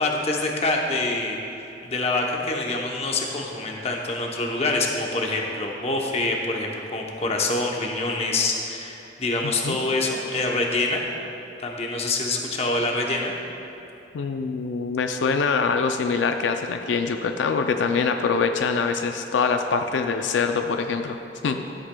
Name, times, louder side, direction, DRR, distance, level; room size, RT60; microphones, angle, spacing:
voice 1, 0.0-1.4 1.8-11.0 11.6-13.3, left 2 dB, 35° left, 0 dB, 0.8 m, -25 dB
voice 2, 9.4-9.8 14.1-21.2 21.4-21.6, left 5 dB, 90° left, 6 dB, 0.4 m, -24 dB
13.0 x 8.0 x 2.2 m, 2.9 s
head